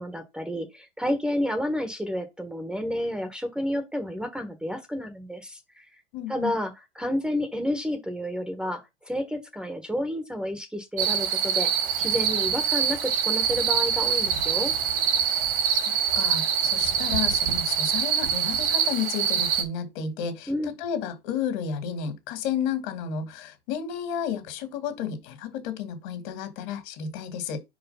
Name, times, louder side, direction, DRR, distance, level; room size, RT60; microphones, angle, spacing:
voice 1, 0.0-5.9 6.3-11.7 12.0-14.7 20.5-20.7, left 1 dB, 5° right, 1.1 m, -30 dB
voice 2, 6.1-6.5 15.7-27.6, left 7 dB, 55° left, 2.3 m, -32 dB
sound 1, 11.0-19.6, right 8 dB, 65° right, 2.2 m, -24 dB
5.0 x 4.6 x 5.5 m
hypercardioid pair, 120°, 29 cm